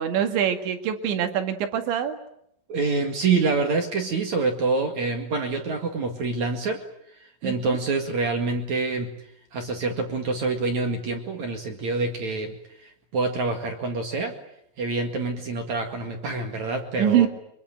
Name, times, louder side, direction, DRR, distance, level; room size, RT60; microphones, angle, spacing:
voice 1, 0.0-2.2 7.4-7.8 17.0-17.3, right 9 dB, 70° right, 7 dB, 4.1 m, -24 dB
voice 2, 2.7-6.9 7.2-9.1 9.5-14.4 14.8-17.3, right 3 dB, 50° right, 5 dB, 2.5 m, -26 dB
25.0 x 23.5 x 9.1 m, 0.73 s
omnidirectional pair, 5.8 m